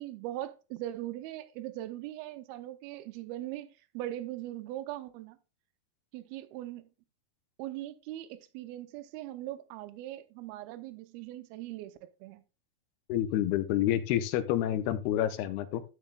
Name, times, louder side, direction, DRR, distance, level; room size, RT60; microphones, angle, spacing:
voice 1, 0.0-5.4 6.1-6.8 7.6-11.9 12.2-12.4, right 14 dB, 80° right, 2.5 m, -40 dB
voice 2, 13.1-15.8, left 12 dB, 85° left, 2.6 m, -28 dB
12.5 x 7.0 x 2.3 m
omnidirectional pair, 4.6 m